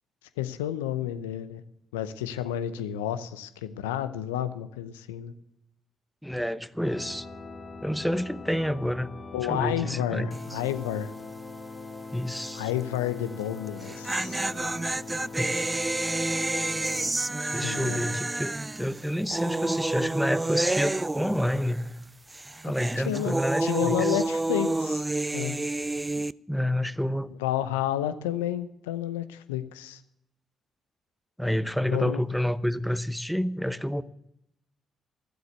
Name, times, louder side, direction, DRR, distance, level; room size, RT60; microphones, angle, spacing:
voice 1, 0.4-1.6 1.9-5.3 9.3-11.1 12.5-14.4 17.4-18.2 23.0-23.3 23.6-25.0 25.3-25.6 27.4-30.0 31.9-32.2, left 11 dB, 90° left, 12 dB, 0.7 m, -31 dB
voice 2, 6.2-7.3 7.8-9.1 9.5-10.6 12.1-12.7 15.4-15.5 17.5-21.9 22.6-24.2 26.5-27.3 31.4-34.0, equal, ahead, 15 dB, 0.8 m, -29 dB
sound 1, 6.8-17.1, left 3 dB, 40° left, 2.1 m, -42 dB
sound 2, 10.3-10.7 10.9-11.0 13.7-22.0 22.3-26.3, right 2 dB, 20° right, 0.4 m, -29 dB
12.5 x 8.0 x 8.0 m, 0.79 s
hypercardioid pair, 45°, 0 cm